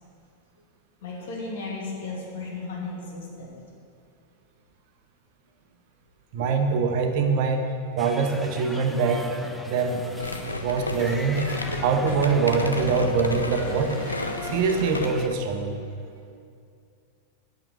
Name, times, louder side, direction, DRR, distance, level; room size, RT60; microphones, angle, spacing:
voice 1, 1.0-3.5, left 3 dB, 55° left, -3 dB, 2.6 m, -35 dB
voice 2, 6.3-7.7 8.0-9.3 9.7-10.0 10.6-11.5 11.8-14.0 14.4-15.8, right 5 dB, 45° right, 5 dB, 1.0 m, -24 dB
sound 1, 8.0-15.3, equal, ahead, 0.7 m, -39 dB
sound 2, 10.2-15.3, left 2 dB, 80° left, 0.6 m, -32 dB
9.0 x 6.4 x 8.1 m, 2.4 s
figure-of-eight pair, 90°, 0 cm